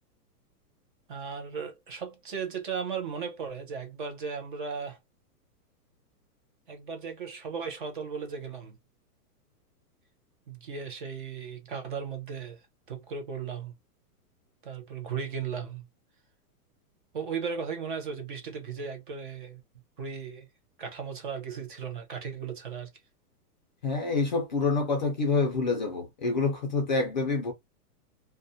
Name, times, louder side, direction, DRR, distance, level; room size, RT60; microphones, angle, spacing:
voice 1, 1.1-5.0 6.7-8.8 10.5-12.6 12.9-13.7 14.6-15.8 17.1-19.6 20.0-20.5 20.8-22.9, right 6 dB, 35° right, 0.5 m, -36 dB
voice 2, 23.8-27.5, left 4 dB, 30° left, 0.4 m, -27 dB
2.4 x 2.1 x 2.6 m
hypercardioid pair, 160°, 48 cm